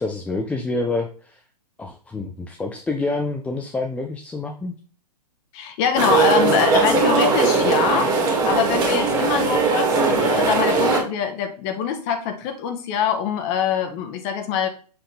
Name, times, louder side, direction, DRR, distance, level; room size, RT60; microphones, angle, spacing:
voice 1, 0.0-1.4 1.8-4.8, left 3 dB, 5° left, 2 dB, 0.4 m, -27 dB
voice 2, 5.5-8.1 8.4-14.7, left 7 dB, 35° left, 7 dB, 1.2 m, -24 dB
sound 1, 6.0-11.0, right 4 dB, 15° right, 1.8 m, -19 dB
7.0 x 3.7 x 3.7 m, 0.40 s
hypercardioid pair, 120°, 21 cm